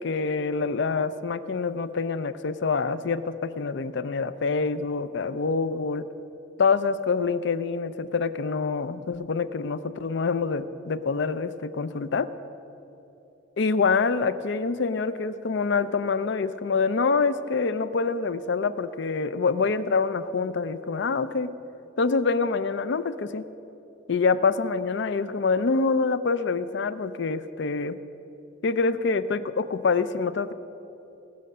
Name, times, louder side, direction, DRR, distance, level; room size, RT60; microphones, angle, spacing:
voice 1, 0.0-6.1 6.6-12.3 13.6-21.5 22.0-23.5 24.1-28.0 28.6-30.5, left 4 dB, 65° left, 13 dB, 0.5 m, -26 dB
18.0 x 6.4 x 6.7 m, 3.0 s
head